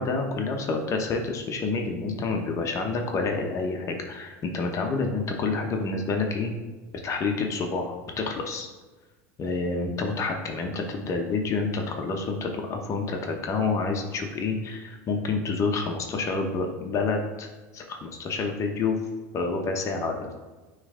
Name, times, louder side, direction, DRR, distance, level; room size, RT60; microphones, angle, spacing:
voice 1, 0.0-6.5 6.9-8.7 9.4-19.0 19.3-20.3, left 4 dB, 40° left, 3 dB, 1.0 m, -28 dB
9.3 x 3.3 x 3.8 m, 1.2 s
hypercardioid pair, 95°, 8 cm